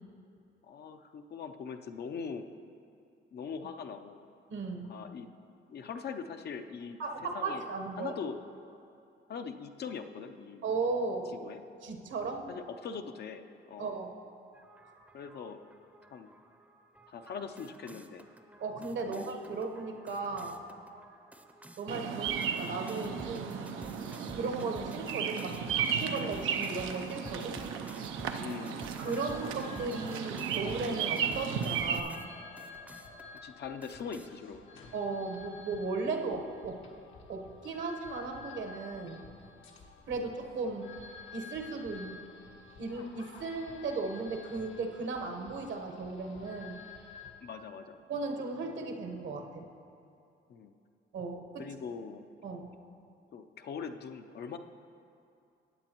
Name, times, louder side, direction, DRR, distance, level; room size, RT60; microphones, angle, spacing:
voice 1, 0.6-2.5 3.3-4.2 4.9-5.3 5.7-7.0 7.3-7.6 8.0-8.4 9.3-10.6 11.4-11.6 12.5-14.0 15.1-15.6 16.1-16.3 17.1-18.3 19.1-19.6 28.4-28.8 33.3-34.6 47.4-48.0 50.5-50.7 51.6-52.2 53.3-54.6, left 6 dB, 55° left, 7 dB, 0.6 m, -41 dB
voice 2, 4.5-4.9 7.0-8.1 10.6-11.4 11.8-12.5 13.8-14.1 18.6-20.6 21.8-23.7 24.3-27.6 29.0-32.3 34.9-36.8 37.3-39.2 40.1-40.9 41.3-42.3 42.8-46.8 48.1-49.7 51.1-51.7 52.4-52.7, right 3 dB, 70° right, 3 dB, 1.1 m, -36 dB
sound 1, 14.5-32.3 32.6-33.4 33.8-34.3, right 1 dB, 5° right, 0.6 m, -52 dB
Bird vocalization bird call bird song, 21.9-32.0, right 7 dB, 85° right, 0.6 m, -35 dB
sound 2, 28.8-47.3, left 5 dB, 75° left, 1.3 m, -52 dB
15.0 x 8.7 x 3.0 m, 2.6 s
cardioid pair, 90°, 20 cm